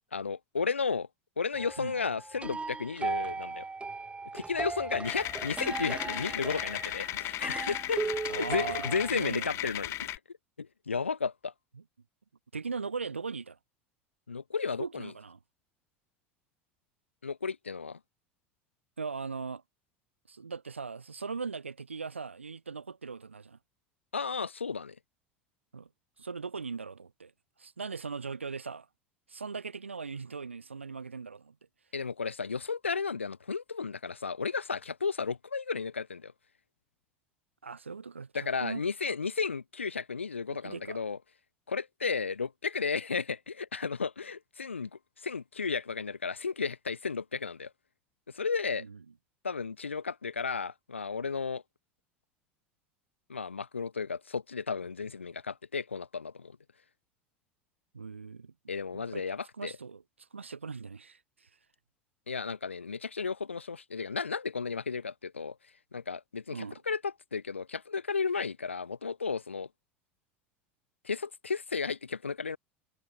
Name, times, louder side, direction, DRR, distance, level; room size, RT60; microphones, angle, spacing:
voice 1, 0.1-1.1 1.4-3.7 4.3-8.0 8.4-10.2 10.6-11.5 14.3-15.1 17.2-18.0 24.1-24.9 31.9-36.3 38.3-41.2 41.7-44.9 45.2-47.7 48.3-48.8 49.4-51.6 53.3-56.5 58.7-59.7 62.3-65.5 65.9-69.7 71.0-72.6, left 5 dB, 90° left, 1.5 m, -33 dB
sound 1, 1.5-9.1, right 4 dB, 15° right, 4.2 m, -37 dB
sound 2, 5.0-10.2, left 15 dB, 45° left, 0.5 m, -36 dB
voice 2, 8.3-9.6 11.8-11.9 12.5-13.6 14.8-15.4 19.0-19.6 20.3-23.6 25.7-25.9 26.2-27.3 27.6-28.9 29.3-31.6 37.6-38.8 40.5-41.0 48.7-49.0 57.9-58.5 58.9-59.2 59.6-61.5 66.5-66.8, right 5 dB, 90° right, 2.5 m, -39 dB
figure-of-eight pair, 75°, 6 cm